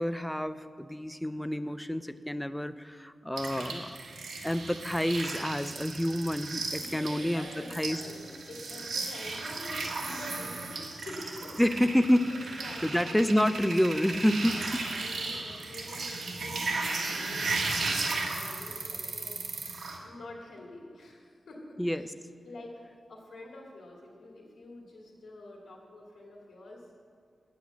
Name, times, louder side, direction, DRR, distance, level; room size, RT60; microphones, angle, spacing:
voice 1, 0.0-3.9 4.4-7.5 7.7-8.0 11.6-14.8 21.8-22.1, equal, 5° left, 11 dB, 0.4 m, -28 dB
sound 1, 3.4-20.0, right 3 dB, 85° right, 1.5 m, -35 dB
voice 2, 6.8-11.6 12.3-13.2 14.4-19.3 20.0-22.1 22.4-22.7 23.1-26.8, left 2 dB, 90° left, -2 dB, 2.3 m, -47 dB
9.6 x 8.3 x 8.3 m, 2.3 s
wide cardioid pair, 125°, 0 cm